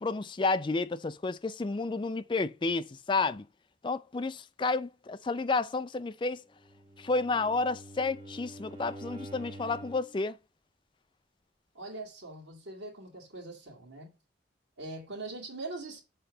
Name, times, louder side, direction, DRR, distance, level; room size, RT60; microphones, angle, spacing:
voice 1, 0.0-3.5 3.8-6.4 7.0-10.4, left 3 dB, 25° left, 0.4 m, -31 dB
Bowed string instrument, 6.6-10.2, right 1 dB, 20° right, 1.8 m, -47 dB
voice 2, 11.7-14.1 14.8-16.0, right 2 dB, 70° right, 2.5 m, -42 dB
6.7 x 3.8 x 5.2 m
head